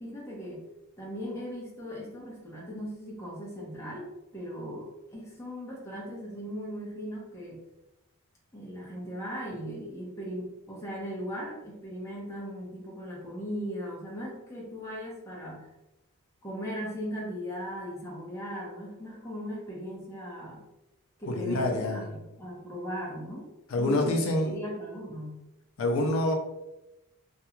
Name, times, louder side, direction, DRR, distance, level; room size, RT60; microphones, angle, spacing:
voice 1, 0.0-0.7 1.0-7.6 8.5-15.7 16.4-20.6 21.2-23.5 23.8-25.4, equal, 15° left, -5 dB, 0.7 m, -38 dB
voice 2, 21.3-22.1 23.7-24.5 25.8-26.3, left 1 dB, 65° left, 1 dB, 0.4 m, -26 dB
2.4 x 2.2 x 2.9 m, 0.95 s
head